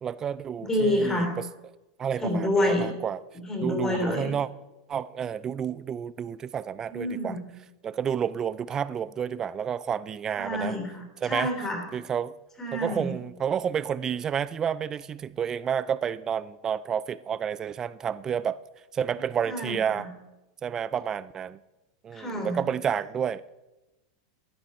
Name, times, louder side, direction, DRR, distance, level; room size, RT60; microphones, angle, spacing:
voice 1, 0.0-1.3 2.0-3.2 3.6-4.5 4.9-7.4 7.8-10.7 11.2-11.5 11.9-12.3 12.7-18.6 18.9-20.1 20.6-21.6 22.0-23.5, right 8 dB, 25° right, 0.4 m, -30 dB
voice 2, 0.6-1.3 2.2-2.9 3.4-4.3 6.9-7.4 10.4-11.8 12.6-13.2 19.4-20.1 22.1-22.6, left 1 dB, 20° left, 3.3 m, -28 dB
13.5 x 10.0 x 4.4 m
supercardioid pair, 125°, 2 cm